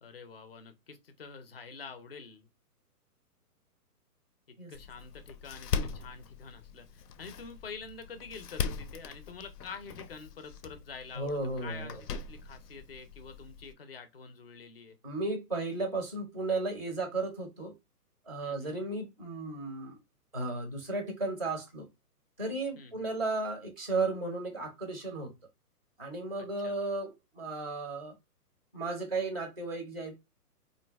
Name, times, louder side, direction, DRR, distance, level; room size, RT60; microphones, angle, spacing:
voice 1, 0.0-2.5 4.7-15.0 18.4-18.8 22.8-23.1 26.6-26.8, left 5 dB, 40° left, 0.4 m, -47 dB
Door, 4.7-13.7, left 6 dB, 85° left, 0.6 m, -40 dB
voice 2, 11.1-12.0 15.0-17.7 18.3-20.0 20.3-21.9 22.4-25.3 26.0-28.1 28.7-30.2, right 3 dB, 25° right, 0.4 m, -34 dB
4.0 x 2.5 x 2.2 m
hypercardioid pair, 165°, 47 cm